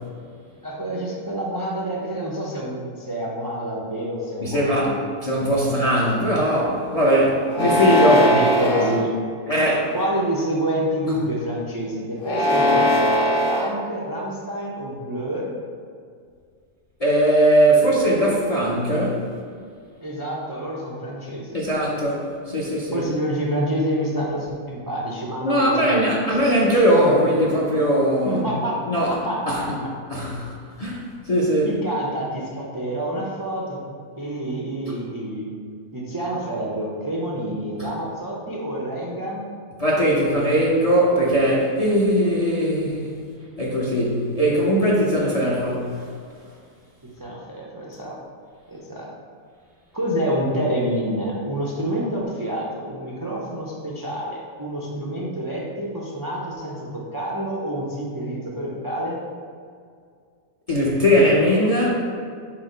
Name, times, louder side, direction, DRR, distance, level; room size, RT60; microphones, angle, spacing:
voice 1, 0.6-5.0 6.9-7.1 7.6-7.7 8.1-9.1 9.9-15.5 20.0-21.6 22.9-26.4 28.2-28.8 29.2-29.7 31.6-33.8 34.2-35.5 35.9-39.4 47.2-48.1 48.7-49.1 49.9-59.2, right 1 dB, 30° right, -5 dB, 0.3 m, -28 dB
voice 2, 4.4-4.9 5.2-8.2 9.5-9.9 17.0-19.2 21.5-23.0 25.4-28.4 28.9-29.1 29.5-29.8 30.1-31.7 39.8-43.2 43.6-46.0 60.7-61.9, equal, 35° left, -5 dB, 0.6 m, -20 dB
sound 1, 7.5-9.0 9.7-10.2 12.2-13.7, left 1 dB, 60° left, 1.2 m, -20 dB
4.9 x 3.8 x 5.1 m, 2.2 s
omnidirectional pair, 1.6 m